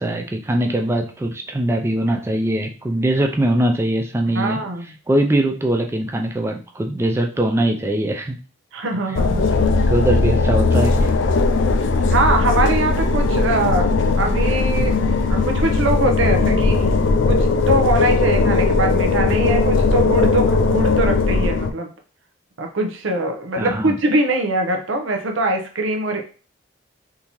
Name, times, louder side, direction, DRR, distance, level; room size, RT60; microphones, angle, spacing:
voice 1, 0.0-4.7 5.1-8.4 9.1-9.2 9.9-11.1 23.6-24.0, right 1 dB, 15° right, 3 dB, 0.3 m, -21 dB
voice 2, 4.4-4.9 8.7-9.5 12.1-13.9 14.2-15.0 15.3-16.8 17.3-21.9 22.6-26.2, right 1 dB, 75° right, 4 dB, 0.6 m, -22 dB
sound 1, 9.1-21.7, left 3 dB, 70° left, 0.4 m, -18 dB
3.6 x 2.7 x 2.9 m, 0.37 s
head